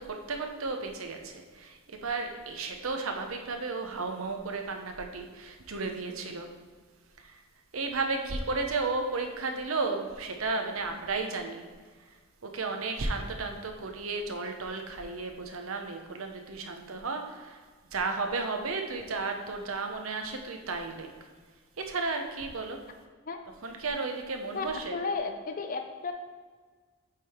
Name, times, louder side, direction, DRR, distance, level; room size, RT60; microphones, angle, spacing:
voice 1, 0.0-6.5 7.2-7.4 7.7-11.6 12.4-17.6 17.9-21.1 21.8-22.8 23.6-25.0, right 3 dB, 80° right, 4 dB, 0.8 m, -33 dB
voice 2, 24.5-26.1, left 4 dB, 40° left, 5 dB, 0.5 m, -33 dB
8.2 x 3.6 x 4.4 m, 1.5 s
head